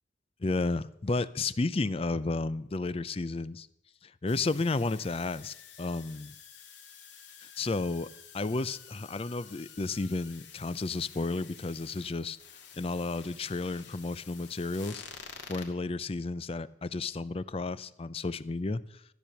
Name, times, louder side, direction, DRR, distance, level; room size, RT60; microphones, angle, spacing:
voice 1, 0.4-3.7 4.0-6.3 7.6-8.1 8.3-12.4 12.8-15.0 15.5-18.8, left 3 dB, 30° left, 16 dB, 0.5 m, -32 dB
sound 1, 4.3-15.7, left 7 dB, 75° left, 2.1 m, -50 dB
14.0 x 10.0 x 7.0 m, 0.78 s
head